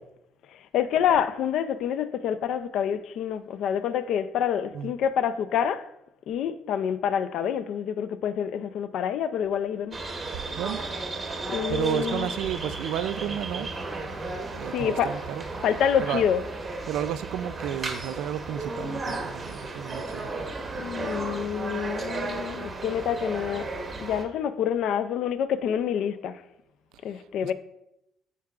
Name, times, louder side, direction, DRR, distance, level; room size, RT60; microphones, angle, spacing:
voice 1, 0.7-5.8 6.3-10.0 11.5-12.3 14.7-15.2 15.6-16.4 20.7-23.7 24.0-26.4 27.0-27.5, left 8 dB, 55° left, 0.4 m, -27 dB
sound 1, 9.9-24.2, right 3 dB, 20° right, 0.8 m, -34 dB
voice 2, 11.7-13.7 14.5-15.4 16.0-16.2 16.9-20.3, right 11 dB, 70° right, 0.3 m, -32 dB
13.5 x 4.6 x 2.4 m
cardioid pair, 175°, 0 cm